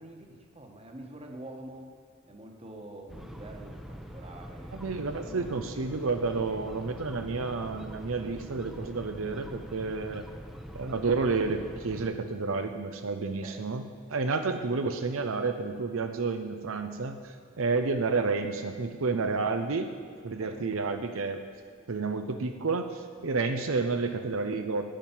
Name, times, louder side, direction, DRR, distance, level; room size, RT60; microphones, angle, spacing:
voice 1, 0.0-1.9 2.3-4.9 5.2-5.8 6.5-6.6 13.4-13.6 20.4-20.6, right 1 dB, 30° right, 2 dB, 1.3 m, -46 dB
sound 1, 3.1-12.1, equal, ahead, 0.8 m, -44 dB
voice 2, 4.7-10.3 10.7-13.8 14.1-19.9 20.2-21.4 21.9-24.9, right 4 dB, 80° right, 7 dB, 0.7 m, -30 dB
10.0 x 9.3 x 7.2 m, 2.1 s
head